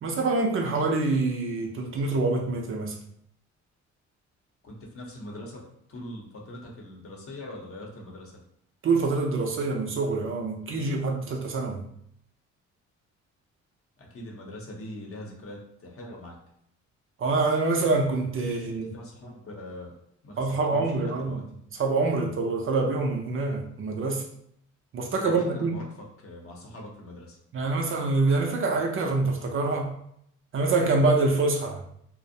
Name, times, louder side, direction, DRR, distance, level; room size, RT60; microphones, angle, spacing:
voice 1, 0.0-3.0 8.8-11.8 17.2-18.9 20.4-21.4 21.8-24.2 24.9-25.7 27.5-30.0 30.5-31.8, right 3 dB, 45° right, 2 dB, 0.5 m, -25 dB
voice 2, 4.6-8.3 14.0-16.4 18.4-20.0 20.2-21.4 25.2-27.4, left 1 dB, 50° left, -1 dB, 0.8 m, -42 dB
2.5 x 2.0 x 2.6 m, 0.72 s
cardioid pair, 90°, 30 cm